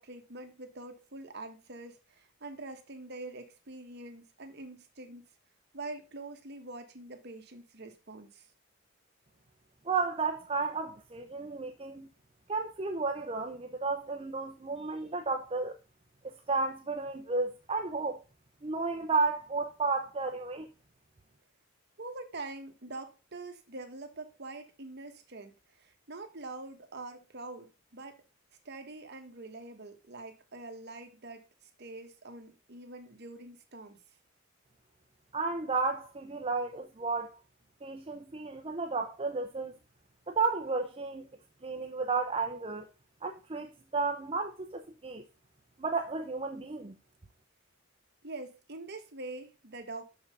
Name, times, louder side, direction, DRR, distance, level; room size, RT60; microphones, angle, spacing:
voice 1, 0.0-5.2 5.7-8.4 22.0-25.5 25.8-28.2 28.6-31.4 31.8-34.0 48.2-50.0, right 2 dB, 55° right, 1.4 m, -44 dB
voice 2, 9.8-12.1 12.5-15.8 16.2-18.2 18.6-20.7 35.3-37.4 37.8-39.8 40.3-41.3 41.6-42.9 43.2-45.2 45.8-47.0, right 4 dB, 30° right, 0.7 m, -33 dB
6.6 x 5.7 x 5.3 m
head